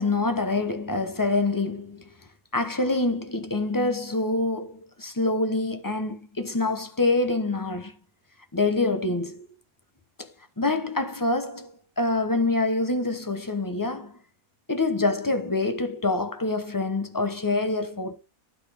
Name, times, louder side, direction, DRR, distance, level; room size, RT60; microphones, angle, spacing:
voice 1, 0.0-2.1 2.5-7.9 8.5-9.5 10.2-14.2 14.7-18.2, left 2 dB, 15° left, 0.7 m, -26 dB
12.0 x 4.1 x 4.9 m
omnidirectional pair, 1.7 m